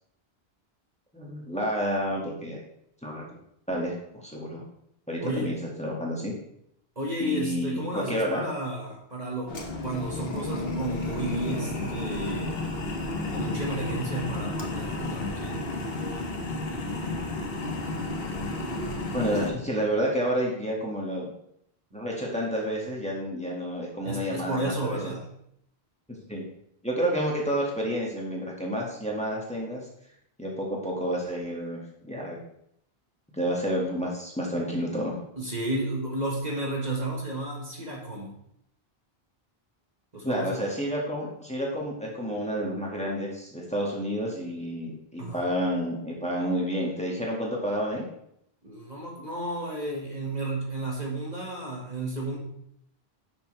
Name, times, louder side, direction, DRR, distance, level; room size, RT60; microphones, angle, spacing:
voice 1, 1.1-2.6 3.0-3.3 3.7-4.6 5.1-6.3 7.2-8.4 19.1-21.3 21.9-25.1 26.3-26.5 26.8-29.8 30.4-32.4 33.4-35.2 40.2-48.0, equal, 5° left, -3 dB, 1.8 m, -30 dB
voice 2, 5.2-5.5 7.0-9.5 9.8-12.6 13.3-15.7 24.0-25.3 35.4-38.3 40.1-40.6 45.2-45.4 48.6-52.4, right 1 dB, 40° right, -2 dB, 1.6 m, -32 dB
sound 1, 9.5-19.5, left 2 dB, 65° left, 1.4 m, -32 dB
9.9 x 6.5 x 3.3 m, 0.73 s
omnidirectional pair, 1.1 m